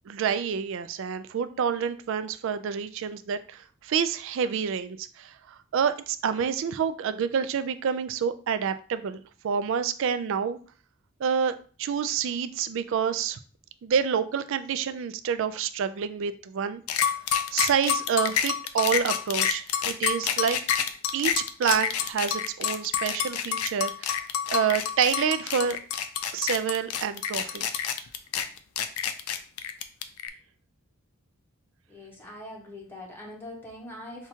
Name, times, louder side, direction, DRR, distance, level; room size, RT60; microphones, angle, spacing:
voice 1, 0.1-5.4 5.7-10.6 11.2-13.4 13.8-17.2 17.5-20.6 21.1-24.1 24.5-25.8 26.3-27.9, right 7 dB, 60° right, 11 dB, 0.3 m, -28 dB
sound 1, 16.9-30.3, left 8 dB, 85° left, 0.4 m, -28 dB
voice 2, 31.9-34.3, left 1 dB, 10° left, -2 dB, 0.8 m, -42 dB
5.8 x 2.4 x 2.8 m, 0.40 s
head